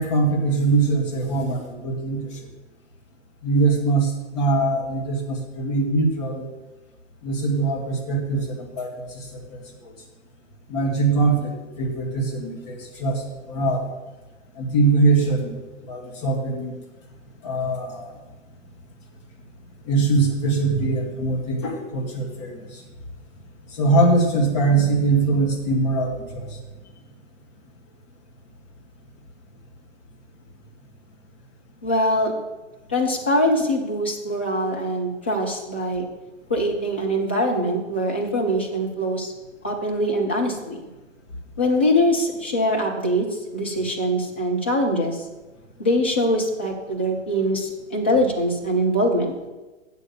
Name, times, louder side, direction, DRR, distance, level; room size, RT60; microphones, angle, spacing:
voice 1, 0.0-2.5 3.4-6.5 7.2-9.9 10.7-13.9 14.6-16.8 17.4-18.2 19.8-22.8 23.7-26.6, right 3 dB, 35° left, 0 dB, 2.1 m, -22 dB
voice 2, 31.8-32.3 32.9-36.0 36.5-39.3 39.6-40.8 41.6-43.3 43.5-45.2 45.8-49.3, equal, 10° left, -2 dB, 0.3 m, -23 dB
8.0 x 6.8 x 7.7 m, 1.2 s
figure-of-eight pair, 115°, 39 cm